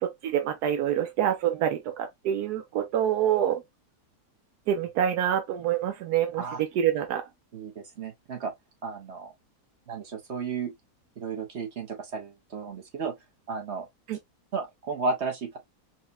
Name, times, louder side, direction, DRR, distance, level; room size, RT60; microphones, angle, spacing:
voice 1, 0.0-3.6 4.7-7.2 14.1-14.2, right 10 dB, 80° right, 1.1 m, -26 dB
voice 2, 7.5-8.5 8.8-9.3 9.9-10.7 11.2-13.1 13.5-13.9 14.5-15.6, right 4 dB, 50° right, 1.1 m, -33 dB
4.3 x 2.4 x 2.5 m
omnidirectional pair, 1.7 m